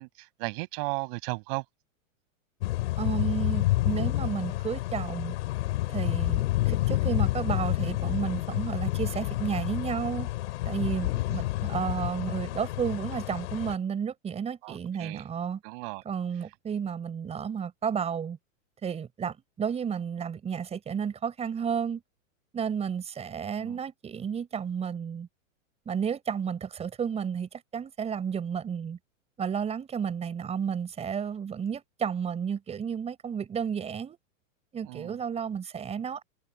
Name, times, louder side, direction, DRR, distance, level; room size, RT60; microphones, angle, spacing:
voice 1, 0.0-1.6 14.6-15.2 15.6-16.0 23.6-23.8 34.9-35.2, right 34 dB, 40° right, 6.8 m, -35 dB
sound 1, 2.6-13.7, left 17 dB, 55° left, 4.2 m, -29 dB
voice 2, 3.0-5.4 5.9-10.3 10.7-15.6 16.0-18.4 18.8-22.0 22.5-25.3 25.9-29.0 29.4-34.2 34.7-36.2, right 7 dB, 15° right, 5.6 m, -32 dB
supercardioid pair, 155°, 41 cm